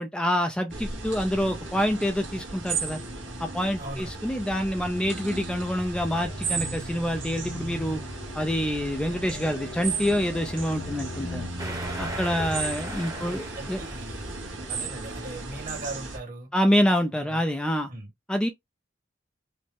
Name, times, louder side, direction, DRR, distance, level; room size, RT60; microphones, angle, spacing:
voice 1, 0.0-3.0 3.4-8.0 8.3-11.5 12.0-13.8 16.5-17.9 18.3-18.5, equal, 5° left, 0.3 m, -26 dB
sound 1, 0.7-16.2, right 3 dB, 85° right, 1.8 m, -35 dB
voice 2, 3.8-4.2 13.1-14.3 14.7-16.5 17.1-17.5 17.9-18.1, right 2 dB, 50° right, 1.7 m, -39 dB
sound 2, 6.1-11.5, left 2 dB, 55° left, 0.7 m, -41 dB
sound 3, 11.6-14.1, right 2 dB, 20° right, 0.9 m, -37 dB
5.1 x 2.0 x 3.5 m
head